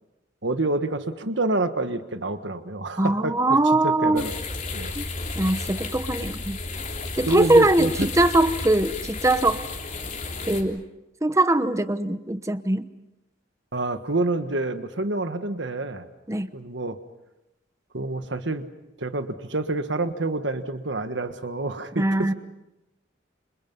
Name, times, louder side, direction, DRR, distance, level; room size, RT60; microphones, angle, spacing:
voice 1, 0.4-3.3 3.8-4.3 4.7-4.9 7.3-8.1 13.7-16.0 16.5-17.0 17.9-18.7 19.0-22.0, right 2 dB, 65° right, 9 dB, 1.5 m, -27 dB
voice 2, 3.0-4.2 4.9-5.1 5.4-6.6 7.2-9.6 10.5-10.8 11.2-12.9 16.3-16.5 22.0-22.3, right 2 dB, 15° right, 12 dB, 0.9 m, -21 dB
sound 1, 4.2-10.6, left 3 dB, 40° left, 3.4 m, -33 dB
29.0 x 27.5 x 5.5 m, 0.95 s
head